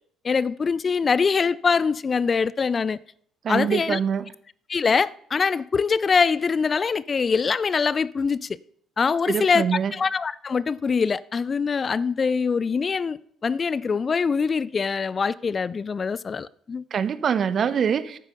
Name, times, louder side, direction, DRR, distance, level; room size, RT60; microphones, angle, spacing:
voice 1, 0.2-3.0 3.5-4.0 4.7-8.6 9.0-16.8, left 5 dB, 35° left, 0.4 m, -23 dB
voice 2, 3.4-4.2 9.3-9.9 16.9-18.2, right 7 dB, 50° right, 0.8 m, -24 dB
11.0 x 9.4 x 5.5 m
figure-of-eight pair, 50°, 0 cm